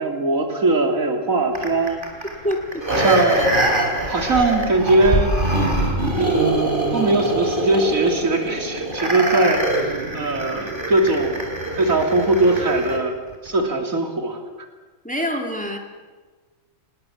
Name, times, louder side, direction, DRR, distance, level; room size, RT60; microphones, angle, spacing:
voice 1, 0.0-2.0 2.9-3.7 4.1-5.3 6.1-6.6 6.9-11.4 11.8-13.1 13.4-14.4, right 2 dB, 85° right, 4 dB, 3.5 m, -20 dB
sound 1, 1.5-13.0 13.5-13.6, right 1 dB, 40° right, 4.6 m, -23 dB
voice 2, 2.4-2.8 15.0-15.8, equal, 5° left, 3 dB, 2.9 m, -25 dB
27.5 x 20.5 x 7.3 m, 1.3 s
omnidirectional pair, 1.4 m